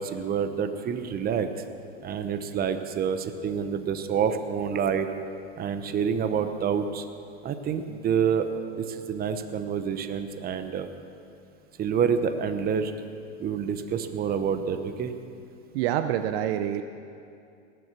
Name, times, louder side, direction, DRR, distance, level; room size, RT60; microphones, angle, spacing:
voice 1, 0.0-1.5 2.0-5.1 5.6-7.0 7.4-8.5 8.8-10.9 11.8-12.9 13.4-15.1, right 7 dB, 25° right, 9 dB, 0.9 m, -27 dB
voice 2, 15.7-16.8, right 11 dB, 60° right, 9 dB, 0.7 m, -26 dB
18.0 x 7.9 x 6.7 m, 2.5 s
hypercardioid pair, 115°, 34 cm